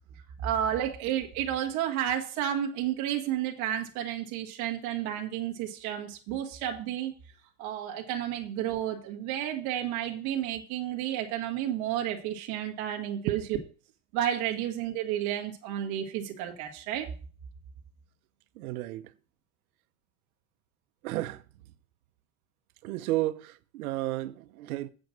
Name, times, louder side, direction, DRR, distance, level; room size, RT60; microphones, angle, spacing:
voice 1, 0.4-7.1 7.6-13.4 14.1-17.1, right 11 dB, 40° right, 1.5 m, -31 dB
voice 2, 18.6-19.1 21.0-21.4 22.8-24.9, right 16 dB, 90° right, 0.8 m, -32 dB
7.7 x 5.2 x 6.4 m
supercardioid pair, 170°, 42 cm